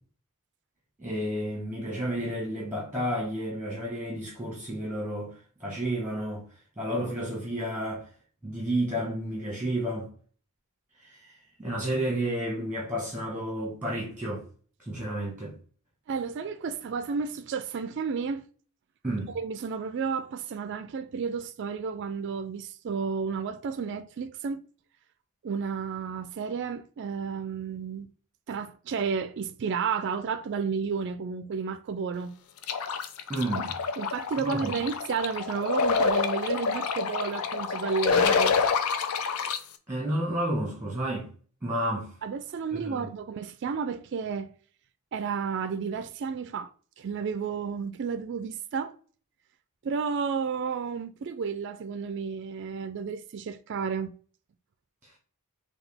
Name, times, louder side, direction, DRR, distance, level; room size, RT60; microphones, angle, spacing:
voice 1, 1.0-6.5 6.8-8.1 8.4-10.1 11.0-14.4 14.8-15.6 19.0-19.3 33.3-33.8 34.4-34.8 39.9-41.3 41.6-42.1 42.7-43.2 55.0-55.1, right 1 dB, 10° right, 1.2 m, -31 dB
voice 2, 16.1-18.5 19.3-24.7 25.4-28.1 28.5-32.3 34.0-38.6 41.8-41.9 42.2-44.5 45.1-46.7 47.0-49.0 49.8-54.1, right 5 dB, 55° right, 0.3 m, -32 dB
sound 1, 32.6-39.6, left 5 dB, 70° left, 0.5 m, -27 dB
5.8 x 2.3 x 3.4 m
head